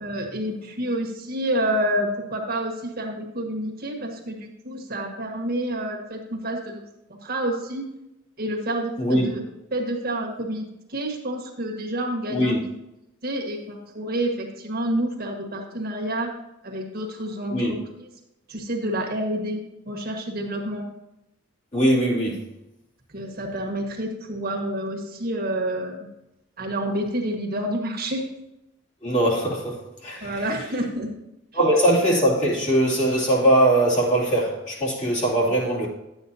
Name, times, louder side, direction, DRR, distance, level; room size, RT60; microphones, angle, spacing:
voice 1, 0.0-6.8 7.1-7.9 8.4-9.4 9.7-12.6 13.2-16.3 16.6-18.1 18.5-20.8 23.1-26.0 26.6-28.3 30.2-31.1, right 1 dB, 45° right, 1.6 m, -28 dB
voice 2, 9.0-9.3 12.3-12.6 17.5-17.7 21.7-22.4 29.0-30.4 31.5-35.9, right 1 dB, 35° left, 2.7 m, -21 dB
11.5 x 8.3 x 2.8 m
head